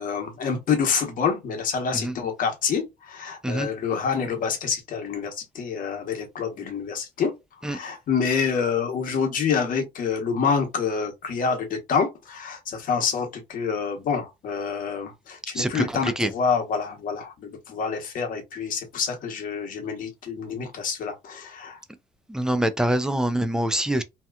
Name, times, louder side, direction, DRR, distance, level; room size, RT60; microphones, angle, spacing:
voice 1, 0.0-7.3 7.7-21.8, left 6 dB, 55° left, 1.0 m, -27 dB
voice 2, 15.5-16.3 22.3-24.0, right 1 dB, 5° right, 0.4 m, -25 dB
2.8 x 2.3 x 2.3 m
cardioid pair, 110°, 17 cm